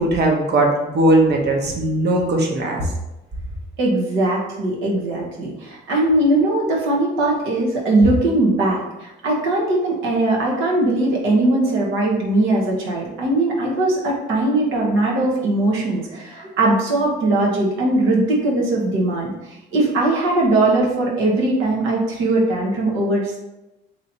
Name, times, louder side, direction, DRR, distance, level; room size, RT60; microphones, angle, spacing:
voice 1, 0.0-2.9, right 1 dB, 55° right, 1 dB, 0.9 m, -18 dB
voice 2, 3.8-19.3 19.7-23.4, right 2 dB, 90° right, -3 dB, 1.0 m, -20 dB
3.0 x 2.8 x 4.0 m, 0.96 s
cardioid pair, 90°, 20 cm